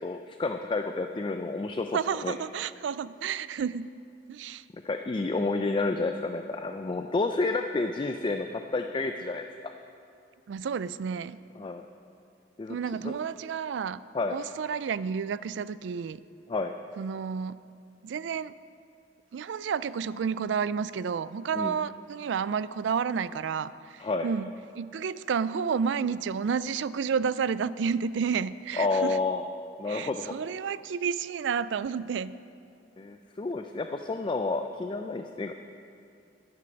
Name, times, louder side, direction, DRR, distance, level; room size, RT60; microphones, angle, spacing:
voice 1, 0.0-2.3 4.8-9.5 11.6-11.8 12.6-12.8 13.0-13.1 14.1-14.4 16.5-16.7 21.5-21.7 24.0-24.3 28.8-29.4 29.8-30.3 33.0-35.5, left 3 dB, 25° left, 6 dB, 0.4 m, -30 dB
voice 2, 1.9-3.9 4.3-4.6 10.5-11.4 12.7-14.0 14.3-16.2 17.0-17.6 18.0-18.5 19.3-29.2 29.9-32.3, right 6 dB, 75° right, 16 dB, 0.3 m, -31 dB
12.5 x 9.8 x 5.3 m, 2.5 s
head